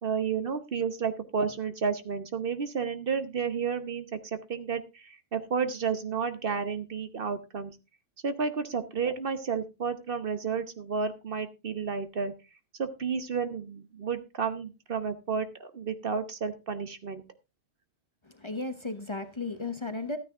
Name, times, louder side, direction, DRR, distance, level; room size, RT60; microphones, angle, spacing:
voice 1, 0.0-7.8 8.2-12.3 12.8-17.2, right 6 dB, 55° right, 10 dB, 1.2 m, -31 dB
voice 2, 18.2-20.2, left 3 dB, 25° left, 9 dB, 0.9 m, -35 dB
13.0 x 9.5 x 3.6 m, 0.27 s
omnidirectional pair, 1.2 m